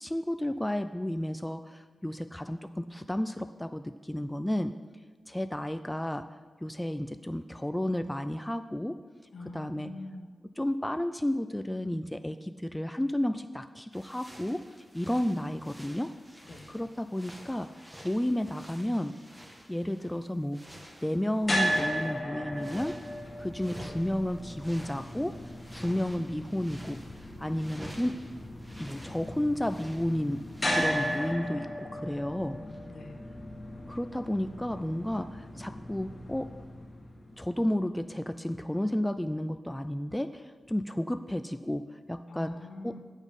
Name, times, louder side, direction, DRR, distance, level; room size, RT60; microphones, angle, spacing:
voice 1, 0.0-4.7 5.3-6.3 6.6-9.0 9.5-9.9 10.6-14.6 14.9-16.1 16.7-17.7 18.0-19.1 19.7-20.6 21.0-23.0 23.4-25.4 25.7-27.0 27.4-28.1 28.8-32.6 33.9-36.5 37.4-41.8 42.1-42.5 42.8-42.9, left 1 dB, 5° left, 8 dB, 0.3 m, -32 dB
voice 2, 9.3-10.3 16.4-16.7 32.3-33.2 42.3-43.0, left 2 dB, 70° left, 2 dB, 1.3 m, -45 dB
sound 1, 13.9-22.2 22.5-31.3, equal, 15° right, 1.2 m, -50 dB
sound 2, 21.4-37.6, equal, 30° left, 1.5 m, -36 dB
8.2 x 7.2 x 5.3 m, 1.4 s
wide cardioid pair, 100°, 0 cm